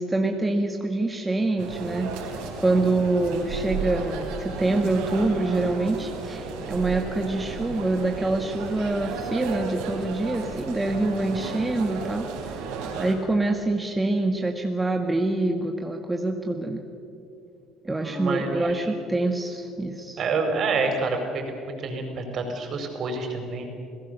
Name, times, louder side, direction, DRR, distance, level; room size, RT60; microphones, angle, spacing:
voice 1, 0.0-12.3 13.0-16.8 17.8-20.2, right 2 dB, 15° right, 3 dB, 1.7 m, -25 dB
sound 1, 1.6-13.1, right 4 dB, 80° right, 4.4 m, -34 dB
voice 2, 18.0-18.9 20.2-23.7, right 3 dB, 50° right, 4 dB, 4.9 m, -28 dB
28.5 x 17.0 x 6.8 m, 2.6 s
supercardioid pair, 85°, 0 cm